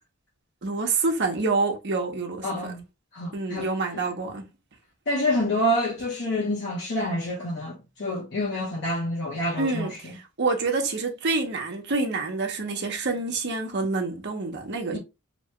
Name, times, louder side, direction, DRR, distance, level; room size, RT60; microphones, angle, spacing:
voice 1, 0.6-2.7 3.3-4.5 9.6-15.0, right 3 dB, 55° right, 0.8 m, -27 dB
voice 2, 2.4-2.8 3.1-3.7 3.9-4.0 5.1-9.9 14.9-15.0, left 1 dB, 60° left, 0.9 m, -27 dB
2.9 x 2.3 x 2.9 m
head